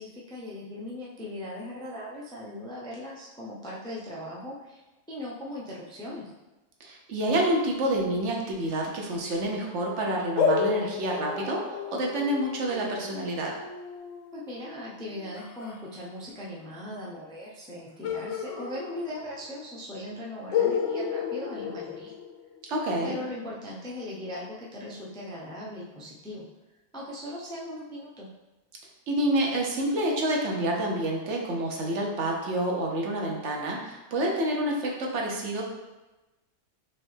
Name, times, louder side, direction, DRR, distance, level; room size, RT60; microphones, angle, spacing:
voice 1, 0.0-6.3 14.3-22.1 23.0-26.5 26.9-28.3, left 1 dB, 5° left, -5 dB, 0.4 m, -39 dB
voice 2, 6.8-13.5 22.7-23.2 29.1-35.6, right 1 dB, 70° right, -1 dB, 1.1 m, -28 dB
sound 1, 10.4-15.8 18.0-19.5 19.8-19.9 20.5-22.7, left 6 dB, 80° left, 1.0 m, -31 dB
4.4 x 3.1 x 3.2 m, 1.1 s
omnidirectional pair, 1.3 m